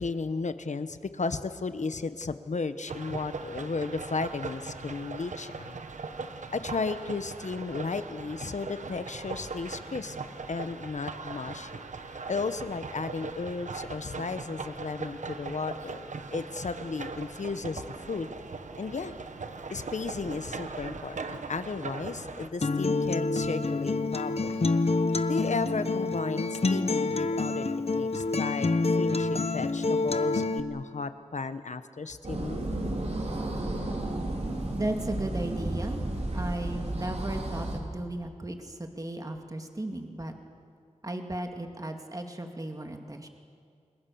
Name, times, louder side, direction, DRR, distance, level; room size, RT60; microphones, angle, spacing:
voice 1, 0.0-5.8 6.5-10.2 10.5-11.7 12.3-17.8 18.1-18.3 18.8-19.1 19.7-24.7 25.3-27.7 27.9-28.7 28.9-32.7, left 4 dB, 75° left, 11 dB, 1.2 m, -34 dB
sound 1, 2.9-22.5, right 4 dB, 90° right, 1.2 m, -40 dB
Acoustic guitar, 22.6-30.6, left 3 dB, 55° left, 1.1 m, -27 dB
sound 2, 32.2-37.8, right 1 dB, 60° right, 3.9 m, -32 dB
voice 2, 34.7-36.0 36.3-40.3 41.0-43.3, right 1 dB, 30° right, 4 dB, 2.2 m, -35 dB
29.5 x 21.5 x 7.1 m, 2.2 s
wide cardioid pair, 70°, 12 cm